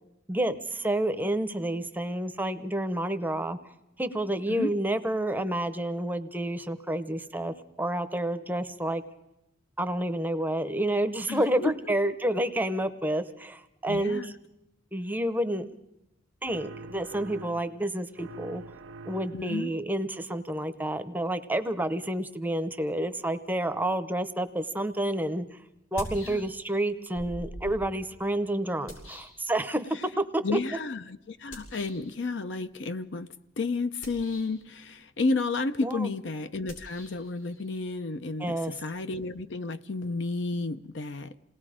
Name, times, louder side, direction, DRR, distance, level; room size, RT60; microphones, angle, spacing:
voice 1, 0.3-3.7 4.0-9.0 9.8-14.3 14.9-15.7 16.4-18.6 19.1-25.6 25.9-30.4 35.8-36.1 38.4-38.7, right 1 dB, 10° right, 0.7 m, -29 dB
voice 2, 11.3-12.1 13.9-14.3 19.3-19.7 26.2-26.5 30.4-33.3 33.6-41.4, left 3 dB, 60° left, 0.6 m, -32 dB
sound 1, 16.4-17.9 18.2-19.7, right 3 dB, 75° right, 0.6 m, -45 dB
sound 2, 24.8-24.9 25.8-26.8 27.1-30.0 31.5-32.1 33.9-34.7 36.6-39.2, equal, 85° left, 5.6 m, -45 dB
28.0 x 19.0 x 5.0 m
head